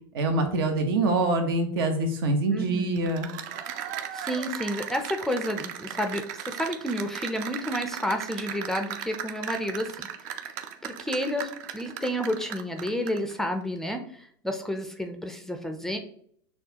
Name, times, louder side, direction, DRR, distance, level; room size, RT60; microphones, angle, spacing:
voice 1, 0.1-3.3, right 2 dB, 85° right, 5 dB, 0.9 m, -25 dB
voice 2, 2.5-3.1 4.1-10.5 10.8-16.0, equal, 5° left, 5 dB, 0.4 m, -31 dB
Cheering / Applause, 3.0-13.3, right 9 dB, 55° right, 0.5 m, -37 dB
6.3 x 2.2 x 2.8 m, 0.62 s
supercardioid pair, 145°, 12 cm